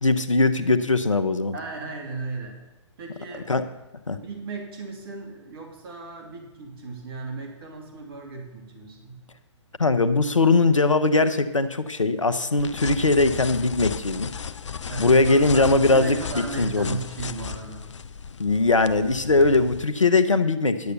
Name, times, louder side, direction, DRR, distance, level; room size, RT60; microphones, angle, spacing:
voice 1, 0.0-1.5 3.5-3.7 4.1-4.2 9.8-14.3 15.0-17.0 18.4-20.9, left 3 dB, 90° left, 11 dB, 1.0 m, -20 dB
voice 2, 1.5-2.6 3.0-3.5 4.1-9.2 14.9-17.9, right 3 dB, 50° right, 2 dB, 2.7 m, -36 dB
sound 1, 12.6-19.8, left 6 dB, 70° left, 0.6 m, -35 dB
11.0 x 8.1 x 6.7 m, 1.0 s
figure-of-eight pair, 125°, 16 cm